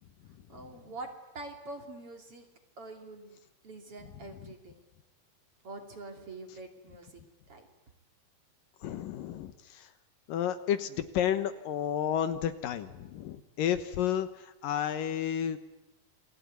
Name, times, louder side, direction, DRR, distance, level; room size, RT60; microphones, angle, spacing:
voice 1, 0.5-2.5 2.8-3.4 3.6-4.8 5.6-7.2 7.5-7.7, right 2 dB, 40° right, 4 dB, 3.6 m, -45 dB
voice 2, 8.8-9.9 10.3-15.6, left 10 dB, 70° left, 10 dB, 2.7 m, -31 dB
28.5 x 21.0 x 9.7 m, 0.98 s
omnidirectional pair, 4.2 m